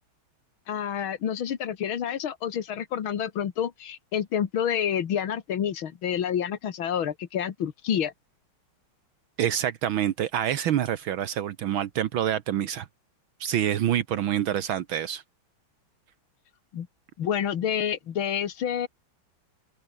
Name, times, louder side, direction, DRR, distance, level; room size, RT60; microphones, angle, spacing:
voice 1, 0.7-8.1 16.7-16.9 17.2-18.9, left 9 dB, 80° left, 2.4 m, -28 dB
voice 2, 9.4-12.9 13.4-15.2, right 10 dB, 75° right, 1.8 m, -26 dB
open air
omnidirectional pair, 2.3 m